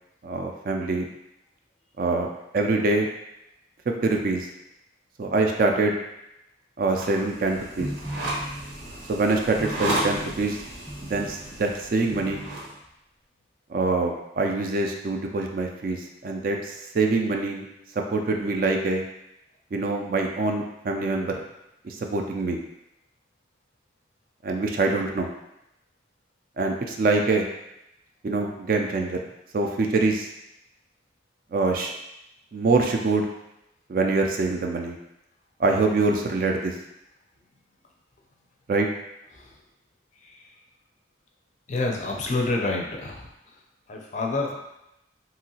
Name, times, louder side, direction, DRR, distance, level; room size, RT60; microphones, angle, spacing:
voice 1, 0.2-1.1 2.0-2.3 2.5-3.1 4.0-4.5 5.2-6.0 6.8-7.9 9.1-10.6 11.0-12.4 13.7-17.7 18.1-19.0 19.7-21.3 21.8-22.6 24.4-25.3 26.6-27.5 28.2-29.2 29.5-30.3 31.5-31.9 32.5-33.3 33.9-35.0 35.6-36.7 38.7-38.9, right 3 dB, 50° right, 2 dB, 0.3 m, -24 dB
sound 1, 6.8-12.7, right 1 dB, 85° right, 0.9 m, -34 dB
sound 2, 7.8-8.9 9.6-10.5 10.9-11.5 12.1-12.8, equal, 5° right, 0.7 m, -37 dB
voice 2, 41.7-43.3 43.9-44.6, left 2 dB, 40° left, 0 dB, 0.4 m, -27 dB
2.9 x 2.7 x 2.7 m, 0.86 s
head